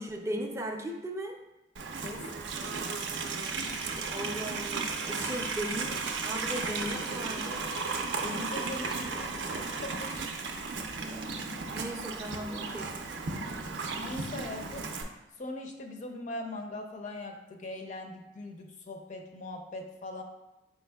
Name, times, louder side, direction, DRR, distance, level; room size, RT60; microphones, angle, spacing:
voice 1, 0.0-1.4 3.9-5.9 6.2-7.7 11.0-12.9, equal, 15° right, 2 dB, 0.4 m, -37 dB
Livestock farm animals working animals, 1.8-15.0, right 4 dB, 75° right, 0.5 m, -35 dB
voice 2, 8.2-10.1 13.9-14.9 15.4-20.2, left 2 dB, 45° left, 3 dB, 0.5 m, -40 dB
4.7 x 4.4 x 2.2 m, 0.96 s
head